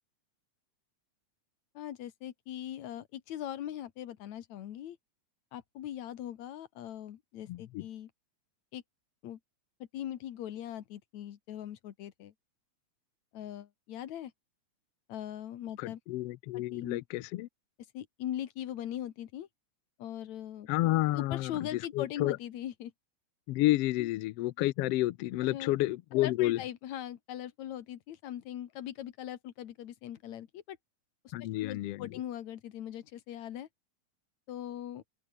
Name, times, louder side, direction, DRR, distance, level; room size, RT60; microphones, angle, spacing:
voice 1, 1.7-5.0 5.5-8.1 8.7-8.8 9.2-9.4 9.9-12.3 13.3-14.3 15.1-16.0 16.5-17.0 17.9-19.5 20.0-20.7 21.1-22.9 24.0-24.1 25.5-25.7 26.1-30.8 31.2-31.3 31.6-33.7 34.5-35.0, left 11 dB, 65° left, 2.6 m, -40 dB
voice 2, 7.5-7.8 15.8-17.5 20.7-22.4 23.5-26.6 31.3-32.2, left 17 dB, 85° left, 1.3 m, -30 dB
omnidirectional pair, 3.6 m